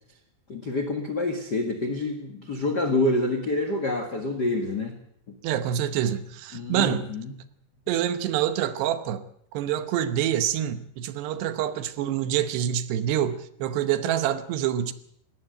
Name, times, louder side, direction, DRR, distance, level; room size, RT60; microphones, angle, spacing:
voice 1, 0.5-5.0 6.5-7.3, left 2 dB, 65° left, 1.0 m, -27 dB
voice 2, 5.4-7.1 7.9-9.2 9.5-14.9, right 10 dB, 80° right, 3.2 m, -26 dB
20.0 x 18.0 x 7.8 m
omnidirectional pair, 4.8 m